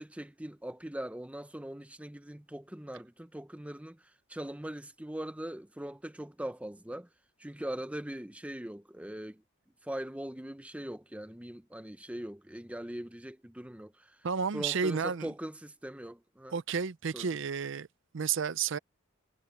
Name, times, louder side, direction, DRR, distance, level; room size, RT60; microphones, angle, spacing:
voice 1, 0.0-4.0 4.3-7.1 7.4-9.4 9.8-14.2 14.5-16.6 17.1-17.3, right 1 dB, 5° right, 0.7 m, -41 dB
voice 2, 14.2-15.3 16.5-17.9 18.1-18.8, right 6 dB, 60° right, 0.5 m, -31 dB
head